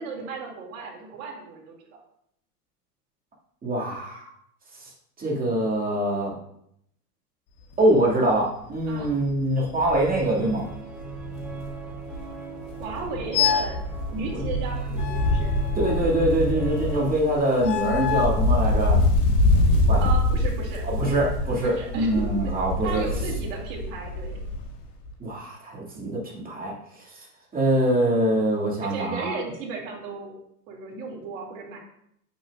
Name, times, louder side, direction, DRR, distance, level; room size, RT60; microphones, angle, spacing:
voice 1, 0.0-2.0 8.9-9.2 12.7-13.8 14.1-15.5 20.0-21.2 21.6-22.5 22.8-24.4 28.8-30.3 30.7-31.8, right 4 dB, 60° right, 0 dB, 2.5 m, -35 dB
voice 2, 3.6-4.3 4.8-4.9 5.2-6.3 7.8-10.7 14.3-14.4 15.8-19.0 19.9-20.0 20.8-23.0 25.2-27.3 27.5-29.4, right 1 dB, 20° right, -4 dB, 2.2 m, -24 dB
Wind, 7.7-8.0 8.4-8.5 8.8-12.3 12.6-24.8 25.0-25.1, left 2 dB, 50° left, 1.5 m, -25 dB
sound 1, 10.0-17.2, right 4 dB, ahead, 0.5 m, -38 dB
sound 2, 13.3-13.8 15.0-16.2 17.6-18.4, left 9 dB, 80° left, 0.6 m, -27 dB
8.5 x 5.6 x 2.5 m, 0.73 s
hypercardioid pair, 105°, 47 cm